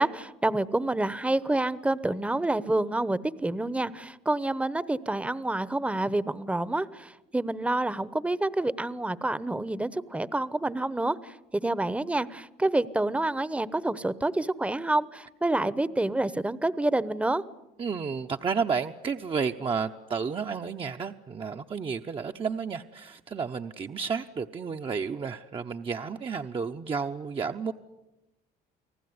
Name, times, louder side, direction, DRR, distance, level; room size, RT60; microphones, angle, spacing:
voice 1, 0.0-17.4, right 2 dB, 5° right, 17 dB, 0.9 m, -28 dB
voice 2, 17.8-27.7, right 5 dB, 30° right, 5 dB, 0.8 m, -31 dB
29.5 x 19.0 x 9.6 m, 1.0 s
cardioid pair, 110°, 17 cm